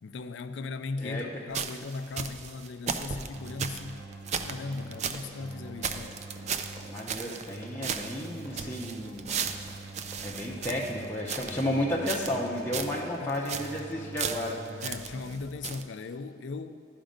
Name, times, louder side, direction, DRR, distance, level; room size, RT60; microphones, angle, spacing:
voice 1, 0.0-4.1 4.4-6.2 13.2-13.4 14.8-16.9, left 3 dB, 75° left, 0.4 m, -38 dB
voice 2, 1.0-1.5 6.9-9.3 10.2-14.6, left 1 dB, 10° left, 0.6 m, -32 dB
sound 1, 1.5-5.3 5.5-5.6 5.8-7.6 7.8-11.7 12.1-12.5 12.7-13.0 13.3-13.8 14.2-15.4 15.6-15.8, right 6 dB, 35° right, 0.3 m, -35 dB
Keyboard (musical), 3.3-15.4, right 3 dB, 65° right, 0.8 m, -45 dB
Run, 4.7-11.5 11.9-12.2 12.6-12.9, left 1 dB, 20° right, 1.6 m, -51 dB
11.5 x 5.2 x 5.1 m
head